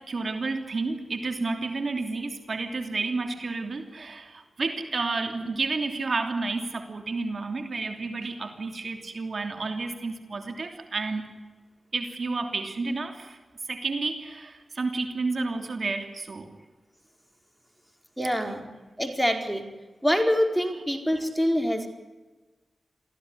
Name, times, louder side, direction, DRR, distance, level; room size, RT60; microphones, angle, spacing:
voice 1, 0.0-11.3 11.9-13.4 13.7-16.5 20.7-20.8, right 3 dB, 60° right, 6 dB, 3.1 m, -31 dB
voice 2, 18.2-18.7 19.0-19.7 20.0-21.9, equal, 5° right, 4 dB, 4.6 m, -25 dB
24.5 x 15.5 x 9.7 m, 1.2 s
cardioid pair, 45°, 0 cm